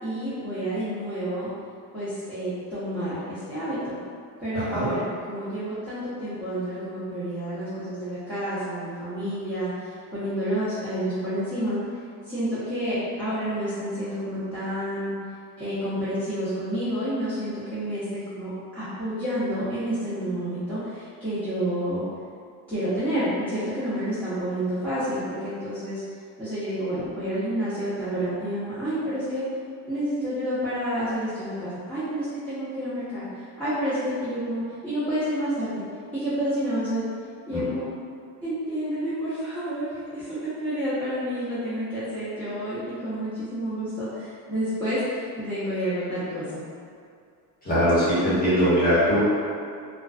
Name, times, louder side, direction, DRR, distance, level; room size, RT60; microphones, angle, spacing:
voice 1, 0.0-1.5 1.9-4.0 4.4-11.8 12.2-15.1 15.6-18.5 18.7-22.0 22.7-26.0 26.4-29.4 29.9-35.8 36.1-37.0 37.5-37.9 38.4-46.6, equal, 5° left, -17 dB, 0.8 m, -29 dB
voice 2, 4.5-4.9 37.5-37.6 47.6-49.2, equal, 20° left, -12 dB, 1.2 m, -21 dB
2.4 x 2.3 x 2.3 m, 2.3 s
cardioid pair, 110°, 43 cm